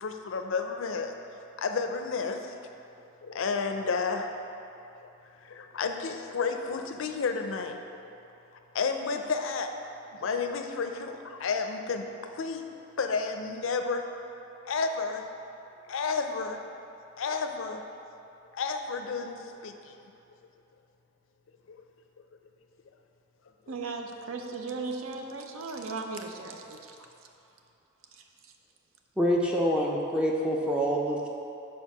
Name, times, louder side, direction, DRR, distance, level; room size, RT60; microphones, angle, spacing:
voice 1, 0.0-1.1 1.6-2.5 3.2-4.4 5.0-5.1 5.4-8.0 8.7-9.7 10.1-14.0 14.7-15.3 15.9-16.6 17.2-17.8 18.5-20.0 21.7-21.8 23.7-23.8, left 4 dB, 65° left, 6 dB, 0.4 m, -31 dB
voice 2, 23.7-27.0, right 3 dB, 70° right, 4 dB, 0.6 m, -37 dB
voice 3, 29.2-31.3, equal, 5° right, -2 dB, 0.4 m, -26 dB
4.5 x 4.5 x 5.9 m, 2.8 s
head